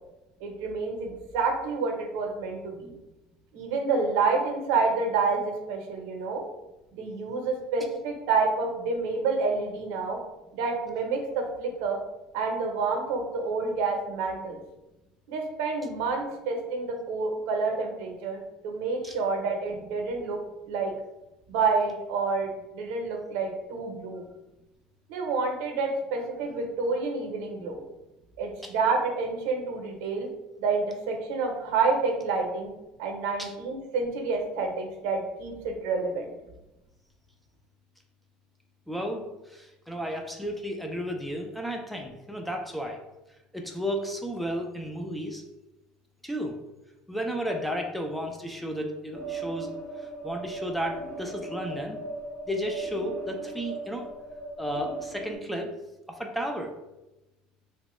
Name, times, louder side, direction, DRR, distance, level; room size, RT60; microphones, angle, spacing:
voice 1, 0.4-3.0 3.5-6.4 6.9-10.2 10.5-12.0 12.3-14.6 15.3-20.9 21.5-24.3 25.1-27.8 28.4-30.3 30.6-32.7 33.0-36.3, right 4 dB, 90° right, 3 dB, 0.6 m, -28 dB
voice 2, 38.9-43.0 43.5-45.4 46.2-46.5 47.1-49.7 50.0-52.0 52.5-54.1 54.6-55.7 56.1-56.7, equal, ahead, 2 dB, 0.3 m, -33 dB
sound 1, 49.1-55.4, right 2 dB, 60° left, 1.0 m, -38 dB
3.2 x 2.1 x 2.9 m, 0.98 s
cardioid pair, 150°, 3 cm